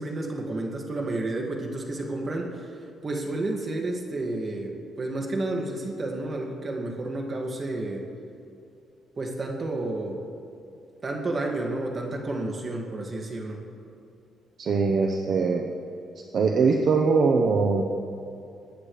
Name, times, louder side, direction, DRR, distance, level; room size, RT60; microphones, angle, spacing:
voice 1, 0.0-2.7 3.0-8.1 9.2-10.2 11.0-13.6, right 2 dB, 40° right, 1 dB, 2.0 m, -31 dB
voice 2, 14.6-15.6 16.3-17.9, right 4 dB, 55° right, 2 dB, 0.9 m, -22 dB
22.5 x 9.3 x 3.3 m, 2.6 s
cardioid pair, 90°, 0 cm